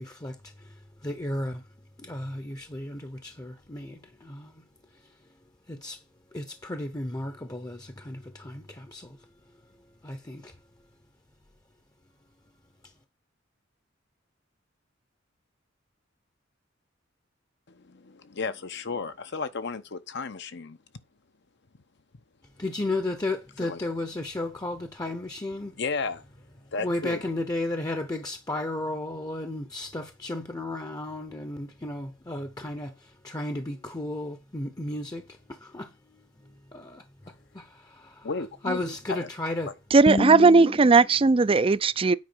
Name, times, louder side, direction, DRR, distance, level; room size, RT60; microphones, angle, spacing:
voice 1, 0.0-1.6 2.0-4.6 4.9-5.1 5.7-6.0 6.3-9.3 10.0-10.6 12.8-12.9 22.6-25.8 26.8-38.3 38.6-39.7 40.1-41.0, left 1 dB, 20° left, 0.8 m, -34 dB
voice 2, 17.7-20.8 23.6-23.9 25.7-26.3 26.7-27.3 38.2-39.3 39.7-39.8, left 4 dB, 60° left, 0.9 m, -34 dB
voice 3, 39.9-42.1, right 4 dB, 30° right, 0.4 m, -18 dB
9.5 x 4.8 x 7.0 m
head